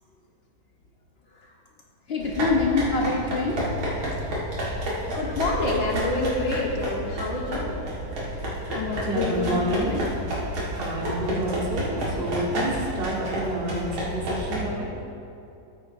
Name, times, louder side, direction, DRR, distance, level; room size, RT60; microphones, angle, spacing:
voice 1, 2.1-3.6 8.3-8.4 8.7-10.1, left 3 dB, 80° left, -1 dB, 0.5 m, -26 dB
sound 1, 2.2-14.6, equal, 80° right, 2.5 m, -30 dB
voice 2, 5.1-7.8, left 2 dB, 50° left, -2 dB, 1.6 m, -27 dB
voice 3, 9.0-10.0 10.7-14.9, right 1 dB, 35° right, -3 dB, 1.5 m, -29 dB
13.5 x 8.7 x 2.6 m, 2.7 s
omnidirectional pair, 2.1 m